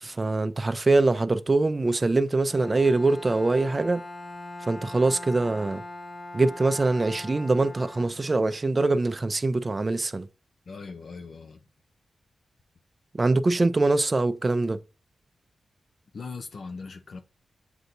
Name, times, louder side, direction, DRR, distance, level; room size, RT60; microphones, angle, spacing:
voice 1, 0.0-4.0 4.7-5.8 6.3-10.3 13.1-14.8, right 3 dB, 30° right, 0.4 m, -23 dB
Bowed string instrument, 2.4-8.6, left 2 dB, 35° left, 0.8 m, -41 dB
voice 2, 10.7-11.7 16.1-17.2, left 4 dB, 65° left, 0.5 m, -39 dB
7.6 x 2.7 x 2.6 m
cardioid pair, 85°, 0 cm